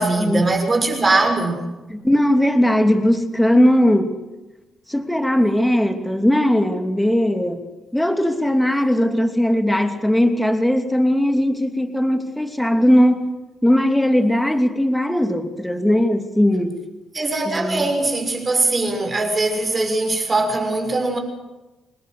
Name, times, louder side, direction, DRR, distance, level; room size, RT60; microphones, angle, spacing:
voice 1, 0.0-1.7 17.1-21.2, right 2 dB, 25° right, 4 dB, 6.4 m, -21 dB
voice 2, 1.9-4.2 4.9-7.6 7.9-13.3 13.6-16.8 17.5-17.9, equal, 5° left, 6 dB, 2.8 m, -18 dB
26.5 x 20.5 x 8.0 m, 1.1 s
cardioid pair, 90°, 0 cm